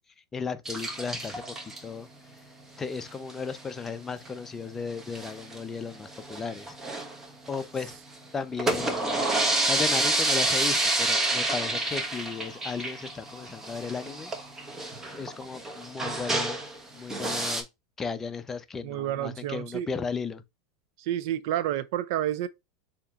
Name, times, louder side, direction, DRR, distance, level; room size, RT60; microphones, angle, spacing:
voice 1, 0.3-2.1 2.8-6.8 7.5-8.0 8.3-9.4 9.7-14.3 15.1-16.7 16.9-17.6 18.0-20.4, left 5 dB, 20° left, 0.6 m, -35 dB
sound 1, 0.7-1.8 3.0-3.3 3.6-3.7 3.9-4.0 4.3-4.4 5.0-5.6 6.0-7.9 8.4-16.8 17.1-17.6, right 2 dB, 15° right, 1.1 m, -29 dB
voice 2, 18.8-19.9 21.0-22.5, right 12 dB, 65° right, 0.4 m, -29 dB
6.8 x 2.9 x 2.4 m
supercardioid pair, 120°, 2 cm